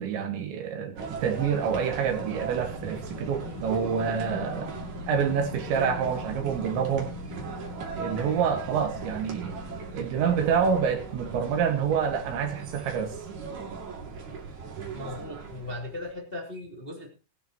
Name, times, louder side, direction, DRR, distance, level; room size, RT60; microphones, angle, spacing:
voice 1, 0.0-4.7 5.1-7.1 8.0-9.5 9.9-13.1, right 7 dB, 70° right, 4 dB, 3.9 m, -27 dB
sound 1, 1.0-16.1, right 5 dB, 45° right, 3.2 m, -38 dB
sound 2, 1.3-13.5, left 4 dB, 80° left, 4.5 m, -44 dB
voice 2, 14.9-17.1, left 2 dB, 15° left, -1 dB, 2.0 m, -38 dB
20.0 x 12.0 x 3.0 m, 0.33 s
omnidirectional pair, 5.6 m